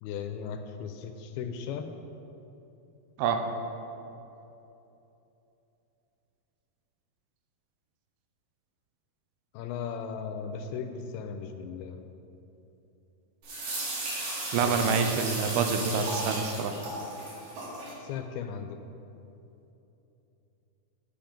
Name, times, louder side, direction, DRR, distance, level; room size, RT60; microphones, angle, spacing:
voice 1, 0.0-1.9 9.5-12.1 14.6-15.3 18.0-18.8, left 7 dB, 80° left, 7 dB, 2.4 m, -37 dB
sound 1, 13.4-17.9, right 2 dB, 60° right, 3.4 m, -35 dB
voice 2, 14.5-16.8, right 5 dB, 90° right, 6 dB, 2.6 m, -27 dB
10.5 x 5.5 x 5.1 m, 2.9 s
omnidirectional pair, 4.5 m